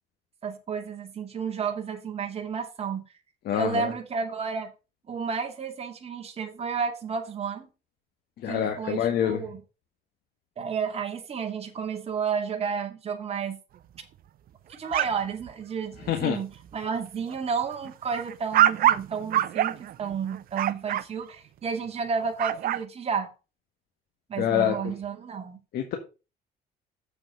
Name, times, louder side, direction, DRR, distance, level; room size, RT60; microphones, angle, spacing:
voice 1, 0.4-3.1 3.5-4.7 5.1-7.7 8.5-9.6 10.6-13.6 14.8-23.3 24.3-25.6, right 6 dB, 35° right, 2.4 m, -31 dB
voice 2, 3.5-3.9 8.4-9.4 16.1-16.4 24.4-24.8 25.7-25.9, left 10 dB, 70° left, 1.6 m, -25 dB
sound 1, 14.7-15.5 15.9-16.1 16.6-16.8 17.3-21.0 22.2-22.8, right 12 dB, 60° right, 0.7 m, -25 dB
7.5 x 6.9 x 5.5 m
cardioid pair, 110°, 17 cm